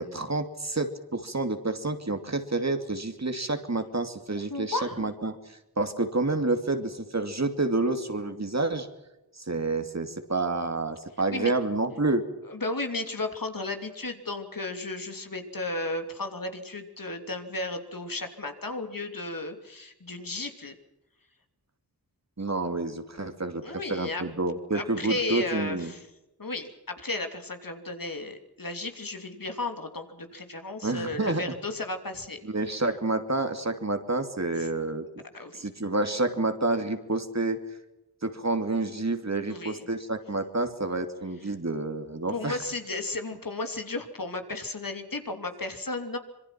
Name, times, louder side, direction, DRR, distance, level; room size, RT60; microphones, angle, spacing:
voice 1, 0.0-5.4 5.8-8.9 9.4-12.3 22.4-23.6 23.9-25.9 30.8-31.5 32.4-35.1 35.5-37.6 38.2-42.6, right 2 dB, 45° right, 7 dB, 2.7 m, -29 dB
voice 2, 4.5-5.0 11.3-11.5 12.5-20.7 23.6-24.2 24.7-26.0 26.4-32.4 34.6-34.7 35.3-35.7 39.5-39.9 42.3-46.2, left 2 dB, 60° left, 6 dB, 3.1 m, -34 dB
26.0 x 23.0 x 6.0 m, 0.94 s
wide cardioid pair, 60°, 39 cm